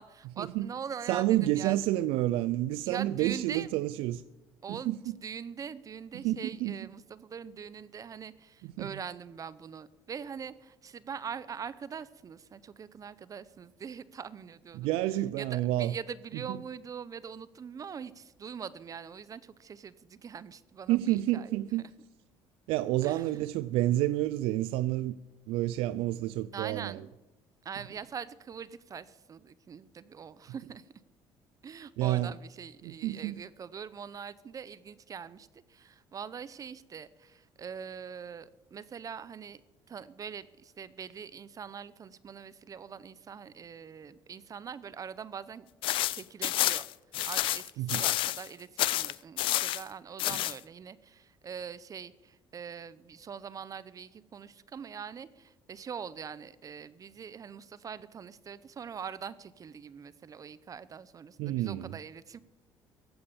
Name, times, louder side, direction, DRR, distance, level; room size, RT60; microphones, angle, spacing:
voice 1, 0.0-1.8 2.9-3.7 4.6-15.0 15.4-21.6 23.0-23.2 26.5-27.1 27.6-30.8 31.6-39.6 39.9-45.7 46.0-46.9 47.3-62.4, right 7 dB, 40° right, 0.7 m, -43 dB
voice 2, 1.1-4.2 4.7-5.0 6.2-6.8 8.8-8.9 14.7-15.9 16.5-16.6 20.9-21.8 22.7-25.2 25.5-27.0 32.0-32.3 32.8-33.4 47.8-48.0 61.4-62.0, right 15 dB, 80° right, 0.4 m, -29 dB
sound 1, 45.8-48.5 48.8-49.8 50.2-50.6, left 15 dB, 65° left, 0.4 m, -29 dB
15.0 x 8.7 x 7.2 m
cardioid pair, 95°, 9 cm